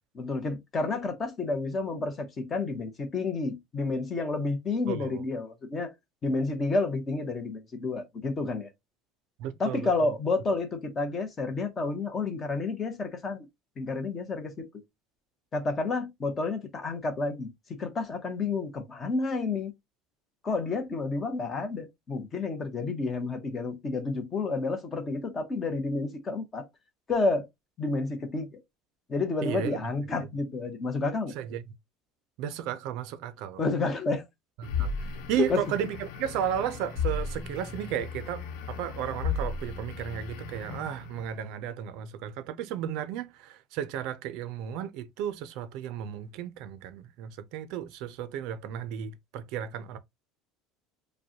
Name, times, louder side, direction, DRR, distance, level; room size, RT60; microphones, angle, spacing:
voice 1, 0.1-5.9 6.2-8.7 9.6-13.5 13.8-14.7 15.5-19.7 20.4-26.7 27.1-27.5 27.8-28.5 29.1-31.3 33.6-34.2 35.4-35.6, left 3 dB, 20° left, 0.8 m, -30 dB
voice 2, 4.9-5.2 9.4-10.1 29.4-29.7 31.3-31.6 32.4-33.6 34.6-50.0, right 10 dB, 55° right, 0.4 m, -34 dB
sound 1, 34.6-41.3, left 5 dB, 70° left, 0.8 m, -35 dB
5.1 x 2.1 x 2.8 m
cardioid pair, 175°, 0 cm